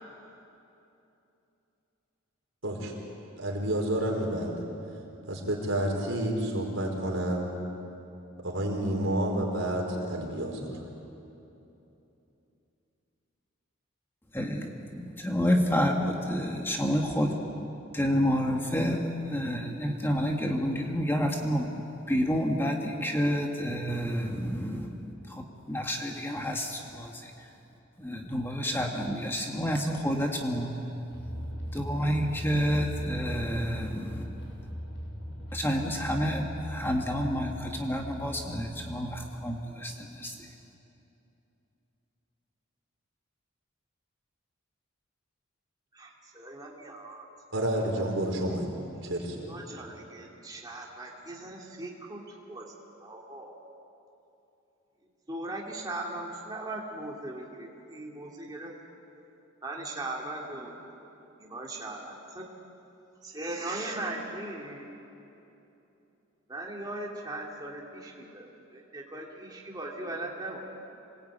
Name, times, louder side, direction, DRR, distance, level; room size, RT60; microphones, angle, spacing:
voice 1, 3.4-4.6 5.3-7.5 8.4-10.7 47.5-48.6 49.0-49.4, right 1 dB, 70° right, 0 dB, 4.9 m, -29 dB
voice 2, 14.3-17.3 17.9-24.9 25.3-27.5 28.0-30.8 31.7-34.3 35.5-40.5, equal, 10° left, 1 dB, 1.7 m, -29 dB
sound 1, 31.1-39.3, equal, 65° left, 6.6 m, -39 dB
voice 3, 45.9-47.3 49.1-52.7 53.0-53.5 55.3-58.7 59.6-60.7 61.4-62.4 63.2-64.8 66.5-68.4 68.7-70.6, right 2 dB, 20° right, -2 dB, 2.5 m, -39 dB
27.0 x 19.5 x 9.0 m, 2.9 s
head